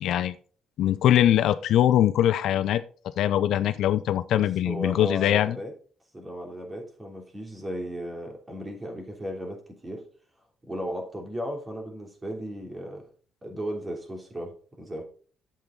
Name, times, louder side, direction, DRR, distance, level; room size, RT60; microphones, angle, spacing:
voice 1, 0.0-0.3 0.8-2.8 3.2-5.6, left 11 dB, 80° left, 13 dB, 0.5 m, -22 dB
voice 2, 4.3-5.7 6.1-10.0 10.7-13.1 13.4-15.0, equal, 20° right, 1 dB, 3.2 m, -35 dB
8.8 x 7.6 x 3.9 m, 0.42 s
cardioid pair, 90°, 0 cm